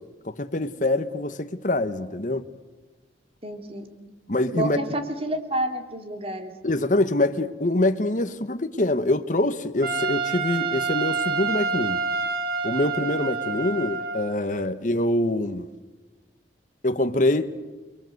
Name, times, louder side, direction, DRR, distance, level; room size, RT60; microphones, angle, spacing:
voice 1, 0.2-2.5 4.3-4.8 6.6-12.0 12.6-15.7 16.8-17.5, left 1 dB, 45° left, 1.4 m, -24 dB
voice 2, 3.4-3.9 4.5-6.5, right 1 dB, 35° right, 3.2 m, -29 dB
Trumpet, 9.8-14.4, right 4 dB, 55° right, 3.1 m, -27 dB
30.0 x 22.5 x 8.0 m
head